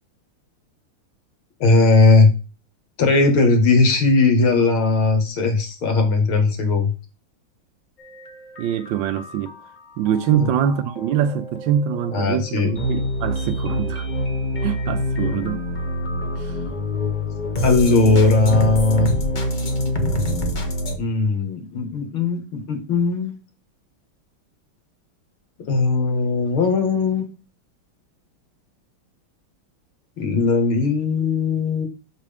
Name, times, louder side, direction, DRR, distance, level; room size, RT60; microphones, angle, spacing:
voice 1, 1.6-2.3 3.0-6.9 10.4-10.5 12.1-12.7 17.6-19.1 21.0-23.4 25.7-27.2 30.2-31.9, left 3 dB, 75° left, 2.4 m, -18 dB
sound 1, 8.0-21.0, equal, 35° left, 0.8 m, -26 dB
voice 2, 8.6-9.6 10.0-14.1 14.6-15.6 16.4-16.6, right 9 dB, 75° right, 1.2 m, -24 dB
6.7 x 6.0 x 3.4 m
omnidirectional pair, 2.3 m